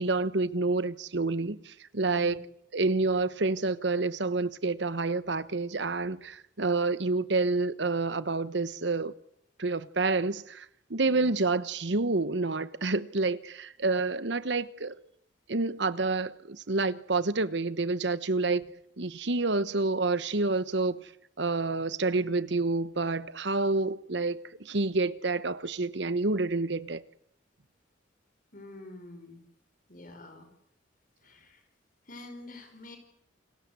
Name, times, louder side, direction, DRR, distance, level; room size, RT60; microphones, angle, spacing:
voice 1, 0.0-2.4 2.7-9.1 9.6-15.0 15.5-18.6 19.0-21.1 21.4-27.0, right 3 dB, 65° right, 1.1 m, -28 dB
voice 2, 11.0-11.4 28.5-29.4 29.9-30.5 31.2-31.6 32.1-33.0, left 2 dB, 45° left, 5.4 m, -47 dB
28.5 x 20.0 x 8.3 m
head